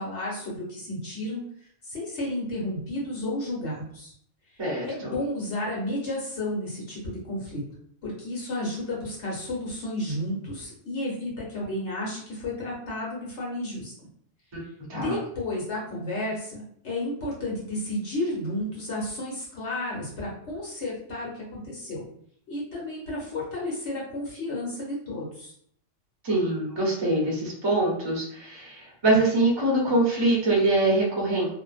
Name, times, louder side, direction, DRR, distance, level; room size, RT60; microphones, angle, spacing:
voice 1, 0.0-1.4 1.8-4.1 4.5-7.6 8.0-14.1 14.9-22.0 22.5-25.5, left 1 dB, 70° left, -5 dB, 1.3 m, -32 dB
voice 2, 4.6-5.1 14.5-14.6 14.9-15.2 26.2-31.5, right 2 dB, 30° right, -4 dB, 0.6 m, -24 dB
2.8 x 2.0 x 2.3 m, 0.65 s
omnidirectional pair, 1.2 m